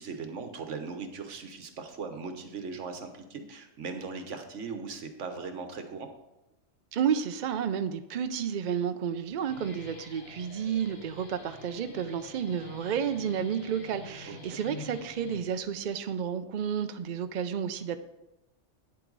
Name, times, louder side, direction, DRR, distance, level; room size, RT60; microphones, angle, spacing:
voice 1, 0.0-6.1 14.3-14.6, right 4 dB, 80° right, 7 dB, 1.3 m, -39 dB
voice 2, 6.9-18.0, right 8 dB, 55° right, 9 dB, 0.5 m, -31 dB
Guitar, 9.3-15.9, left 2 dB, 45° left, 1.3 m, -47 dB
9.7 x 7.7 x 3.9 m, 0.93 s
omnidirectional pair, 1.2 m